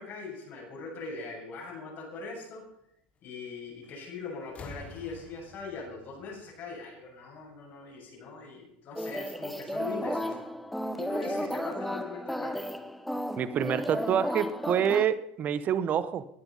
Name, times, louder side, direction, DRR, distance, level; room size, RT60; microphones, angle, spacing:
voice 1, 0.0-2.6 3.2-10.4 11.0-12.6, left 4 dB, 50° left, -4 dB, 7.2 m, -41 dB
sound 1, 3.8-4.1 4.4-7.2 8.3-8.4, left 3 dB, 35° left, 3.6 m, -49 dB
sound 2, 9.0-15.1, equal, ahead, 1.1 m, -33 dB
voice 2, 13.4-16.2, right 8 dB, 45° right, 14 dB, 1.2 m, -27 dB
19.5 x 11.0 x 5.6 m, 0.76 s
hypercardioid pair, 85°, 4 cm